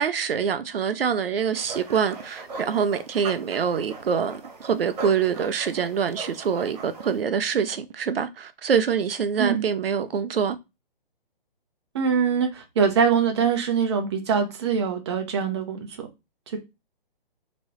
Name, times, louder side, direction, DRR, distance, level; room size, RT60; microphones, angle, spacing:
voice 1, 0.0-10.6, right 7 dB, 75° right, 0.6 m, -25 dB
sound 1, 1.5-7.2, right 3 dB, 45° right, 1.3 m, -39 dB
voice 2, 11.9-16.1 16.5-16.6, right 6 dB, 30° right, 0.7 m, -23 dB
3.6 x 3.0 x 3.0 m
hypercardioid pair, 160°, 29 cm